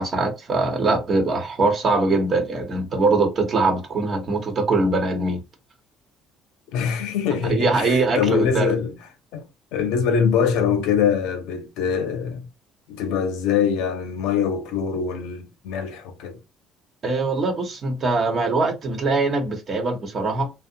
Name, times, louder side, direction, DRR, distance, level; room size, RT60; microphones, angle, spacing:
voice 1, 0.0-5.4 7.5-8.7 17.0-20.5, right 3 dB, 45° right, 0.9 m, -22 dB
voice 2, 6.7-9.0 9.3-9.5 9.7-12.5 12.9-16.4, left 7 dB, 80° left, 0.6 m, -23 dB
2.5 x 2.0 x 2.8 m
supercardioid pair, 90°, 0 cm